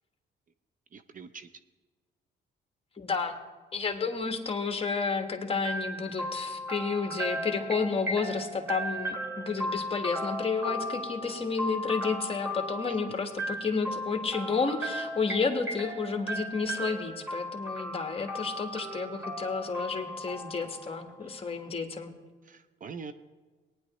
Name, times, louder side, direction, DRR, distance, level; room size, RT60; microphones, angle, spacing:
voice 1, 0.9-1.5 21.2-21.7 22.4-23.1, right 5 dB, 45° right, 11 dB, 0.5 m, -45 dB
voice 2, 3.0-3.4 3.7-22.1, left 4 dB, 30° left, 5 dB, 1.4 m, -31 dB
sound 1, 5.6-21.4, equal, 10° right, 2.4 m, -36 dB
18.5 x 9.9 x 3.0 m, 1.3 s
cardioid pair, 90°, 20 cm